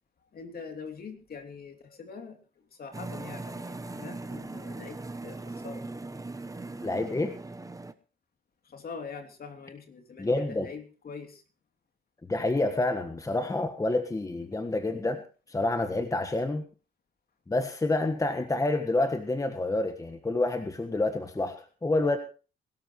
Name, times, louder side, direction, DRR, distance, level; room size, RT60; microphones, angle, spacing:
voice 1, 0.3-5.8 8.6-11.4 14.4-14.5, left 5 dB, 50° left, 5 dB, 3.1 m, -44 dB
sound 1, 2.9-7.9, right 2 dB, 15° right, 1.0 m, -39 dB
voice 2, 6.8-7.3 10.2-10.7 12.3-15.2 15.5-16.7 17.5-22.2, left 2 dB, 15° left, 7 dB, 1.5 m, -28 dB
22.5 x 12.5 x 3.1 m, 0.35 s
cardioid pair, 90°, 20 cm